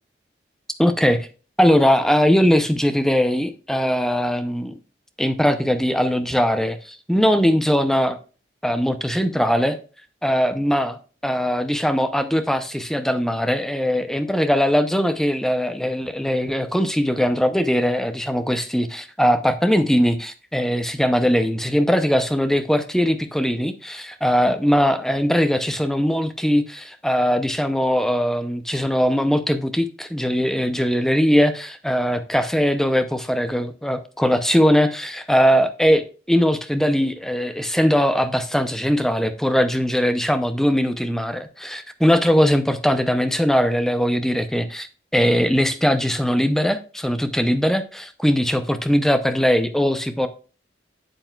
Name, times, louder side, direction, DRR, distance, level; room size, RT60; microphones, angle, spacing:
voice 1, 0.8-1.3 1.6-4.8 5.2-8.2 8.6-9.8 10.2-50.3, equal, ahead, 9 dB, 0.5 m, -20 dB
8.8 x 7.9 x 2.3 m, 0.37 s
head